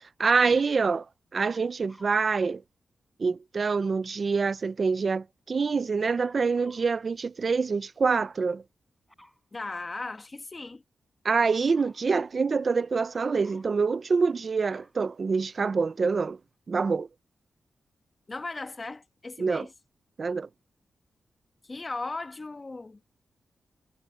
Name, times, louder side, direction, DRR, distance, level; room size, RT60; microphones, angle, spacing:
voice 1, 0.2-1.1 1.3-2.6 3.2-8.6 11.2-16.4 16.7-17.1 19.4-19.7 20.2-20.5, right 4 dB, 45° right, 0.6 m, -26 dB
Dog, 1.9-2.2 6.1-6.9 9.1-9.9 11.3-12.1 13.1-13.7 14.3-15.8 16.5-16.6, left 1 dB, 5° left, 6.8 m, -57 dB
voice 2, 9.5-10.8 18.3-19.7 21.6-23.0, left 3 dB, 30° left, 1.3 m, -37 dB
wide cardioid pair, 115°, 0 cm